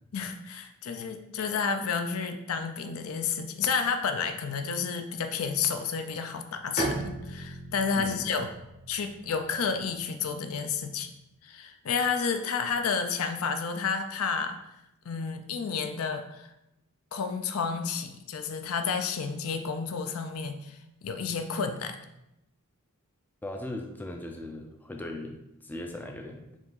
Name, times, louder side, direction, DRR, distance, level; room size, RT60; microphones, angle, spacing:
voice 1, 0.1-8.5 8.9-11.1 11.4-14.6 15.1-16.5 17.1-22.0, left 5 dB, 70° left, 7 dB, 0.4 m, -31 dB
Bowed string instrument, 6.8-10.4, right 1 dB, 35° left, 0.8 m, -37 dB
voice 2, 7.9-8.3 23.4-26.5, left 1 dB, 10° left, 3 dB, 0.3 m, -39 dB
4.8 x 2.7 x 3.9 m, 0.87 s
head